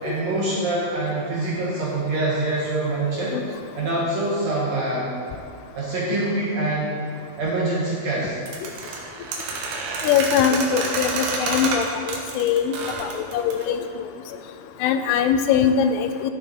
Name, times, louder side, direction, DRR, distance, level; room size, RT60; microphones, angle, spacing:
voice 1, 0.0-3.4 3.8-5.1 5.7-6.9 7.4-8.4 8.8-9.0, right 2 dB, 60° right, -6 dB, 2.1 m, -25 dB
sound 1, 8.5-13.7, right 4 dB, 85° right, 3.3 m, -28 dB
voice 2, 10.0-14.0 14.8-16.3, left 8 dB, 85° left, 8 dB, 2.6 m, -22 dB
13.0 x 6.8 x 4.2 m, 2.4 s
omnidirectional pair, 4.7 m